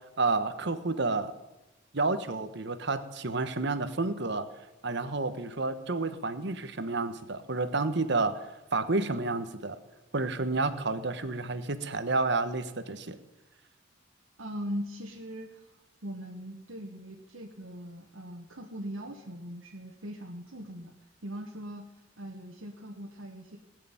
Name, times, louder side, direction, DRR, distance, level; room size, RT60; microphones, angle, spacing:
voice 1, 0.2-1.3 1.9-4.5 4.8-8.4 8.7-9.8 10.1-13.2, right 3 dB, 60° right, 10 dB, 1.2 m, -30 dB
voice 2, 14.4-15.6 16.0-20.9 21.2-21.9 22.2-23.6, equal, 85° right, -1 dB, 1.7 m, -40 dB
19.5 x 6.7 x 9.1 m, 1.0 s
head